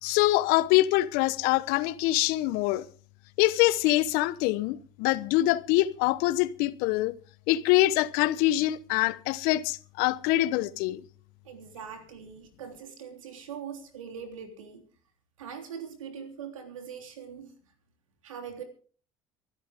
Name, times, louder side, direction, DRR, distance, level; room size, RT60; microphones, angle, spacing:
voice 1, 0.0-2.8 3.4-7.1 7.5-11.0, left 17 dB, 65° left, 1.0 m, -24 dB
voice 2, 11.4-14.8 15.4-17.5 18.2-18.6, right 7 dB, 85° right, 3.3 m, -42 dB
24.0 x 12.0 x 3.6 m
hypercardioid pair, 60°, 17 cm